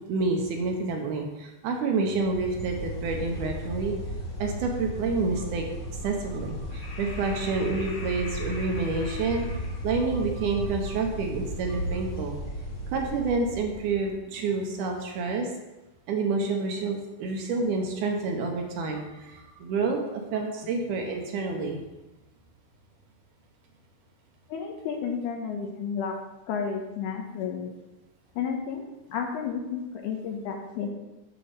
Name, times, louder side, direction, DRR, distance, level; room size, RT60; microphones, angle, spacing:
voice 1, 0.1-3.9 4.4-5.7 6.0-12.3 12.9-15.5 16.1-21.8, right 3 dB, 75° right, 2 dB, 2.2 m, -28 dB
sound 1, 2.1-14.0, equal, 55° left, 2.8 m, -35 dB
voice 2, 24.5-26.2 26.5-27.7 28.4-30.9, left 6 dB, 75° left, 2 dB, 2.1 m, -32 dB
8.7 x 6.7 x 3.4 m, 1.0 s
omnidirectional pair, 4.0 m